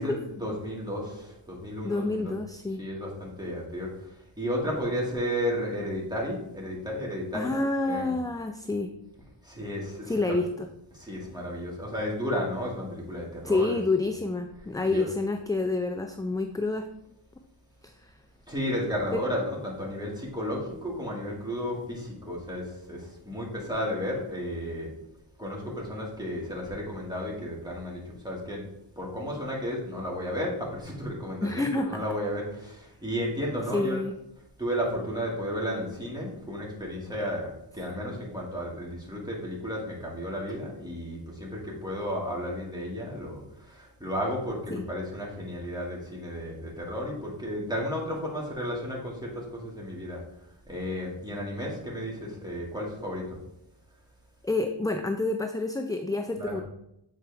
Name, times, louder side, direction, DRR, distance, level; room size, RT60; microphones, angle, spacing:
voice 1, 0.0-2.3 2.8-3.9 4.4-8.2 9.4-10.4 10.9-13.8 14.8-15.1 18.5-24.9 25.4-28.6 29.0-34.1 34.6-50.2 50.7-53.4 56.4-56.6, equal, 10° right, -3 dB, 2.1 m, -33 dB
voice 2, 1.8-2.8 7.3-8.9 10.1-10.7 13.4-16.9 17.8-18.1 19.1-19.2 31.4-32.1 33.7-34.2 44.7-44.8 54.4-56.6, left 2 dB, 10° left, 6 dB, 0.3 m, -28 dB
7.5 x 4.4 x 3.5 m, 0.81 s
wide cardioid pair, 50°, 48 cm